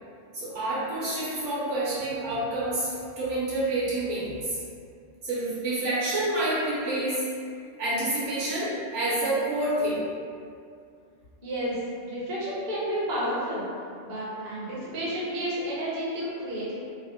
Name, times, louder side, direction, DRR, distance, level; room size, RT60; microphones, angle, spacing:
voice 1, 0.3-4.6 5.2-7.2 7.8-10.0, right 1 dB, 70° right, -9 dB, 1.3 m, -28 dB
voice 2, 11.4-11.8 12.1-13.6 14.0-16.8, equal, 45° right, -8 dB, 0.7 m, -31 dB
3.1 x 2.1 x 2.8 m, 2.4 s
omnidirectional pair, 1.3 m